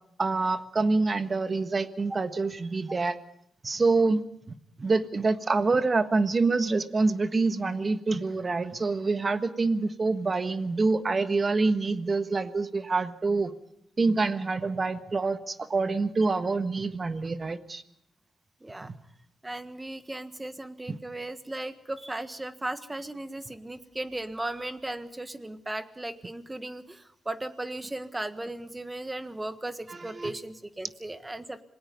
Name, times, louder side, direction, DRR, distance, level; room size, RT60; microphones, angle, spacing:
voice 1, 0.2-3.1 3.6-4.2 4.8-13.5 14.0-17.8 18.8-18.9 20.9-21.0 29.9-30.3, right 3 dB, 40° right, 10 dB, 1.5 m, -26 dB
voice 2, 18.6-18.9 19.4-31.6, right 1 dB, 20° right, 11 dB, 1.5 m, -36 dB
27.0 x 18.5 x 5.4 m, 0.77 s
supercardioid pair, 55°, 0 cm